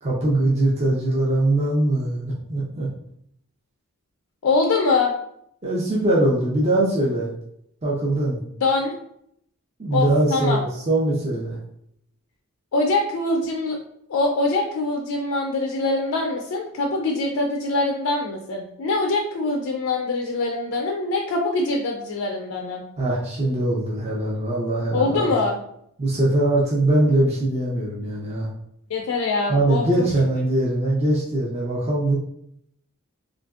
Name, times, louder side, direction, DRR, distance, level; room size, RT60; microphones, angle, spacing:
voice 1, 0.0-2.9 5.6-7.3 7.8-8.4 9.8-11.6 23.0-25.3 26.0-28.5 29.5-32.2, right 1 dB, 30° right, -5 dB, 0.5 m, -22 dB
voice 2, 4.4-5.1 8.6-8.9 9.9-10.6 12.7-13.8 14.1-22.8 24.9-25.6 28.9-30.1, left 3 dB, 70° left, 1 dB, 0.4 m, -23 dB
2.8 x 2.5 x 2.3 m, 0.72 s
head